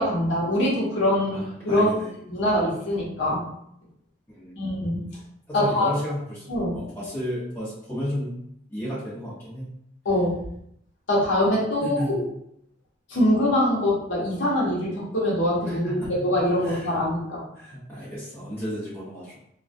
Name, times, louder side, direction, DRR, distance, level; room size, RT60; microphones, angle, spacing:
voice 1, 0.0-1.9 2.3-3.4 4.6-5.0 5.5-5.9 6.5-6.8 10.0-10.4 11.1-12.3 13.1-17.4, left 1 dB, 70° left, -5 dB, 0.8 m, -23 dB
voice 2, 1.3-2.1 4.3-4.6 5.5-6.5 6.7-8.4 8.7-9.7 11.8-12.1 15.7-16.2 16.6-17.0 17.5-19.3, equal, 10° left, -9 dB, 0.9 m, -33 dB
2.3 x 2.1 x 2.5 m, 0.73 s
head